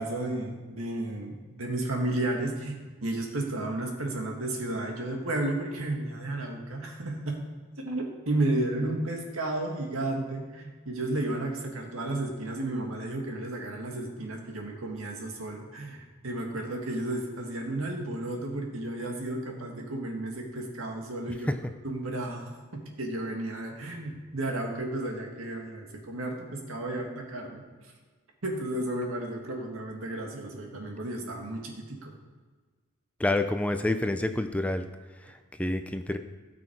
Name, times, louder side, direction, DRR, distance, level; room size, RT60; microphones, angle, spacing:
voice 1, 0.0-7.4 7.8-21.5 21.8-27.6 28.4-32.1, right 2 dB, 85° right, 1 dB, 2.0 m, -33 dB
voice 2, 33.2-34.8 35.3-36.2, left 1 dB, 5° left, 8 dB, 0.4 m, -28 dB
16.5 x 6.2 x 4.6 m, 1.4 s
head